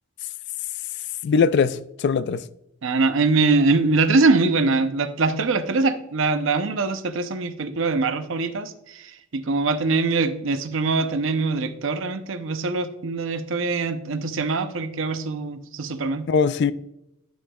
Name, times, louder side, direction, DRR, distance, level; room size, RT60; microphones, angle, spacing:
voice 1, 1.2-2.4 16.3-16.7, left 5 dB, 55° left, 0.3 m, -21 dB
voice 2, 2.8-16.3, right 3 dB, 65° right, 0.6 m, -23 dB
9.5 x 6.3 x 2.3 m
head